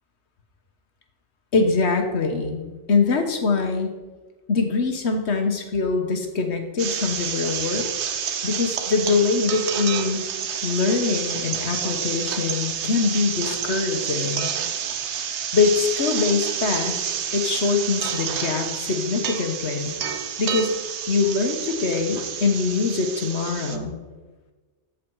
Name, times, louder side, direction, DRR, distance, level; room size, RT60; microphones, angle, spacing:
voice 1, 1.5-3.9 4.5-7.9 8.4-10.2 10.6-14.5 15.5-16.9 17.3-19.9 20.4-20.7 21.1-24.0, left 4 dB, 75° left, 5 dB, 1.4 m, -23 dB
sound 1, 6.8-23.8, right 8 dB, 85° right, 1.0 m, -29 dB
14.0 x 5.0 x 4.7 m, 1.3 s
omnidirectional pair, 1.1 m